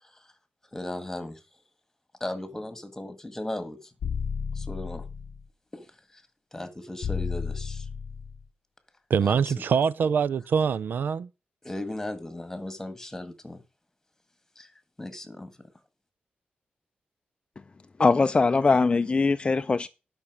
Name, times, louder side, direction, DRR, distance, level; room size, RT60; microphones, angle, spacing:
voice 1, 0.7-1.4 2.2-3.9 4.5-5.1 5.7-6.2 6.5-7.9 9.2-9.5 11.6-13.6 14.5-14.7 15.0-15.5, left 1 dB, 10° left, 1.8 m, -37 dB
sound 1, 4.0-5.4 7.0-8.4, left 6 dB, 75° left, 0.7 m, -32 dB
voice 2, 9.1-11.3, right 6 dB, 70° right, 0.4 m, -24 dB
voice 3, 18.0-19.9, left 4 dB, 30° left, 0.4 m, -21 dB
11.5 x 5.9 x 6.1 m
wide cardioid pair, 100°, 3 cm